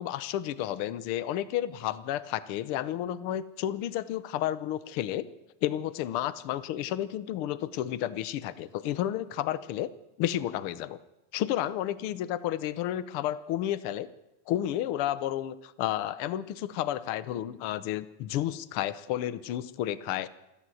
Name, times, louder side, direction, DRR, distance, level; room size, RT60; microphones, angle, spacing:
voice 1, 0.0-5.3 5.6-9.9 10.2-11.0 11.3-14.1 14.5-20.3, left 12 dB, 70° left, 16 dB, 1.3 m, -31 dB
27.5 x 12.5 x 7.7 m, 0.94 s
omnidirectional pair, 3.4 m